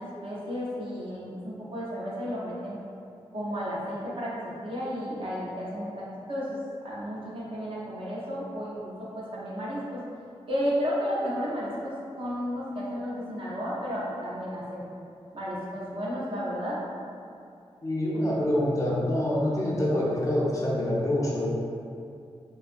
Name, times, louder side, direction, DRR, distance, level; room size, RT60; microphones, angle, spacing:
voice 1, 0.0-2.8 3.3-6.6 6.8-10.0 10.5-14.9 15.3-16.8, equal, 55° right, -7 dB, 0.6 m, -33 dB
voice 2, 17.8-21.5, left 1 dB, 30° left, -5 dB, 0.4 m, -26 dB
2.6 x 2.3 x 2.4 m, 2.5 s
wide cardioid pair, 125°, 11 cm